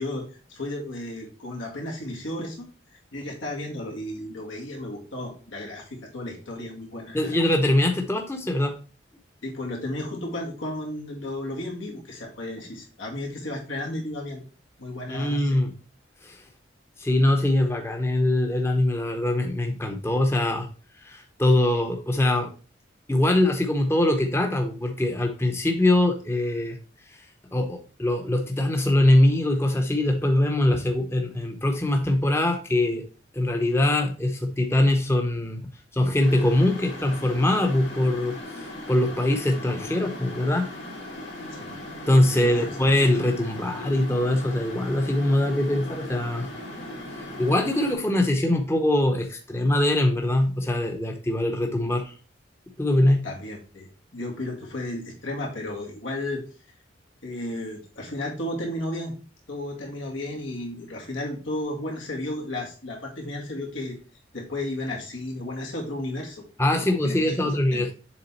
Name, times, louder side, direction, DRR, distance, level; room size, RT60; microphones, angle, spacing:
voice 1, 0.0-2.7 3.1-7.4 9.4-14.4 14.8-15.6 41.5-41.7 42.3-42.7 53.2-56.4 57.2-59.1 59.5-64.0 64.3-66.4 66.7-67.8, left 1 dB, 90° left, -1 dB, 2.1 m, -33 dB
voice 2, 7.1-8.7 15.1-15.7 16.2-16.4 17.0-20.7 21.0-22.5 23.1-26.8 27.1-27.2 27.5-33.0 33.3-40.7 42.1-46.5 47.4-52.1 52.8-53.3 66.6-67.9, left 1 dB, 15° left, 3 dB, 0.8 m, -23 dB
sound 1, 36.2-48.0, left 1 dB, 70° left, 2.3 m, -38 dB
7.1 x 3.7 x 4.2 m, 0.36 s
head